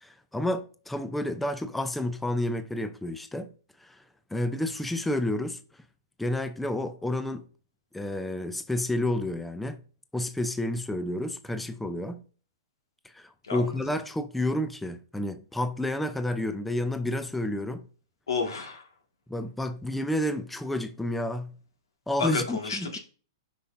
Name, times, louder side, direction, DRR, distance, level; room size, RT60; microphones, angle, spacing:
voice 1, 0.0-3.5 3.8-4.0 4.3-5.6 6.2-7.4 7.9-9.8 10.1-12.2 13.0-17.9 19.3-21.5 22.1-23.0, left 1 dB, 5° left, 0.5 m, -30 dB
voice 2, 18.3-18.8 22.2-23.0, left 4 dB, 85° left, 1.8 m, -30 dB
8.0 x 5.6 x 2.6 m
hypercardioid pair, 125°, 2 cm